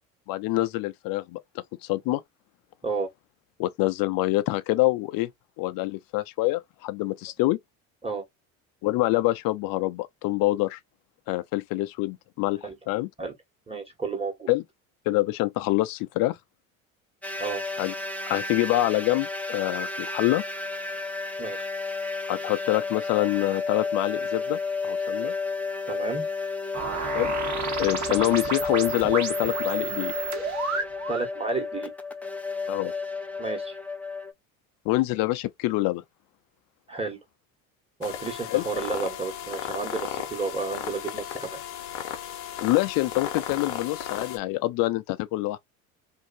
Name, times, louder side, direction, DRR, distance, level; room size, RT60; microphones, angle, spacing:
voice 1, 0.3-2.2 3.6-5.3 5.6-7.6 8.8-10.8 11.3-13.1 14.5-14.6 15.1-16.4 17.8-17.9 18.3-20.4 22.3-25.3 27.1-27.3 27.8-30.1 32.7-32.9 34.8-36.0 38.5-38.6 42.6-45.6, left 18 dB, 55° left, 0.5 m, -26 dB
voice 2, 13.7-14.5 17.4-17.6 21.4-21.7 25.9-26.2 28.1-28.2 31.1-31.9 33.4-33.8 36.9-37.2 38.0-41.6, right 4 dB, 15° right, 1.4 m, -31 dB
sound 1, 17.2-34.3, left 4 dB, 5° left, 0.3 m, -32 dB
sound 2, 26.7-31.3, right 5 dB, 40° right, 1.2 m, -31 dB
sound 3, 38.0-44.4, left 10 dB, 80° left, 0.8 m, -35 dB
2.7 x 2.6 x 2.5 m
hypercardioid pair, 75°, 42 cm